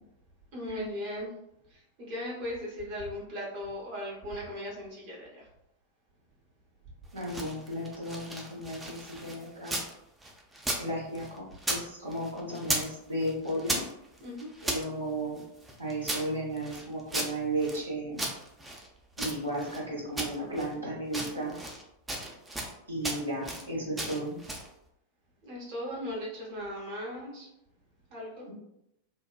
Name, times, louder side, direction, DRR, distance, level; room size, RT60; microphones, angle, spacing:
voice 1, 0.5-1.3 1.7-1.8 2.1-5.5 14.2-14.5 25.4-27.5 28.1-28.5, left 1 dB, 45° right, -4 dB, 0.8 m, -37 dB
sound 1, 7.1-9.9 10.2-11.9 12.1-13.0 13.2-14.8 15.4-17.8 18.2-19.8 20.2-20.7 21.1-21.8 22.1-22.7 23.0-23.7 24.0-24.7, right 1 dB, 10° right, 0.4 m, -35 dB
voice 2, 7.1-9.8 10.8-13.8 14.6-15.4 15.8-18.2 19.2-21.5 22.9-24.4, right 1 dB, 80° right, -6 dB, 0.9 m, -34 dB
2.7 x 2.1 x 2.3 m, 0.81 s
figure-of-eight pair, 90°, 0 cm